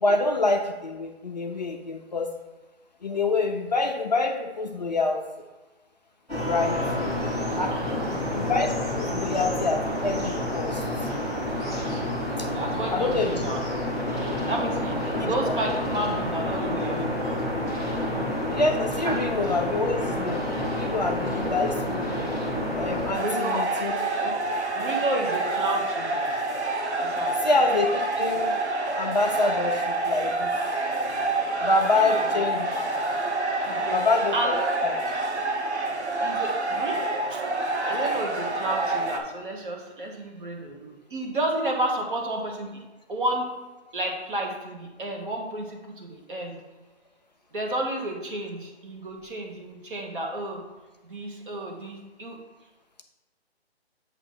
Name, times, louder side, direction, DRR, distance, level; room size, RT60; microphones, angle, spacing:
voice 1, 0.0-2.3 3.0-5.2 6.4-6.8 7.6-7.8 8.1-10.8 12.4-12.5 12.9-13.3 15.1-15.6 18.5-22.1 22.7-24.0 27.4-28.6 29.0-30.5 31.6-32.9 33.9-34.9, left 3 dB, 40° left, 3 dB, 0.5 m, -26 dB
sound 1, 6.3-23.1, left 1 dB, 10° right, 1.8 m, -29 dB
voice 2, 7.7-8.3 12.5-13.6 14.2-18.0 19.0-19.2 23.2-23.6 24.2-24.4 24.7-26.3 27.0-27.4 31.9-32.3 33.6-34.0 34.3-34.6 36.2-37.0 37.3-37.4 37.8-42.7 43.1-43.5 43.9-46.5 47.5-50.6 51.0-52.4, right 1 dB, 50° right, 1 dB, 1.4 m, -31 dB
sound 2, 23.1-39.2, right 2 dB, 80° right, 1.1 m, -27 dB
7.8 x 2.9 x 5.5 m, 1.2 s
hypercardioid pair, 165°, 33 cm